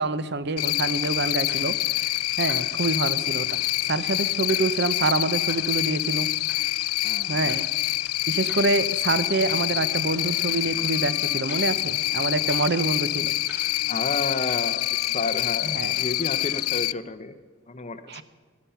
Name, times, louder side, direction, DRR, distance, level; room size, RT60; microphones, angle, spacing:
voice 1, 0.0-3.6 3.9-6.3 7.3-7.7 8.3-13.7 15.6-15.9 18.1-18.2, right 3 dB, 50° right, 14 dB, 0.7 m, -26 dB
Cricket, 0.6-16.9, left 17 dB, 85° left, 0.3 m, -26 dB
sound 1, 0.8-16.7, left 1 dB, 10° right, 4.0 m, -50 dB
voice 2, 7.0-7.5 13.9-17.4 17.7-18.2, left 3 dB, 30° left, 10 dB, 0.7 m, -31 dB
Wind instrument woodwind instrument, 9.6-17.0, left 4 dB, 45° left, 1.3 m, -49 dB
18.0 x 11.5 x 5.7 m, 1.5 s
head